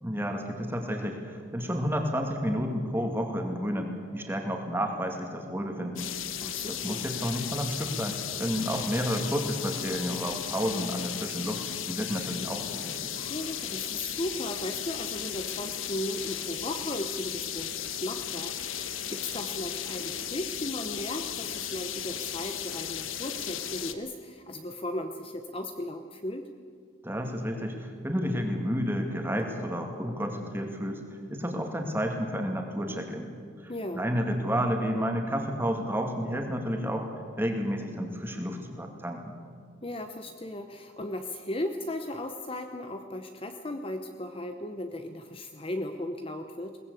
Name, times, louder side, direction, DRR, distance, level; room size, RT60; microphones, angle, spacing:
voice 1, 0.0-6.1 6.7-11.6 11.9-13.1 27.0-31.0 31.3-33.3 33.6-37.1 37.4-39.4, equal, 10° right, 3 dB, 2.4 m, -31 dB
sound 1, 6.0-23.9, left 9 dB, 80° left, 1.3 m, -35 dB
voice 2, 6.4-7.0 13.2-26.5 33.7-34.0 39.8-46.8, left 1 dB, 25° left, 7 dB, 0.9 m, -36 dB
22.0 x 19.0 x 8.3 m, 2.3 s
head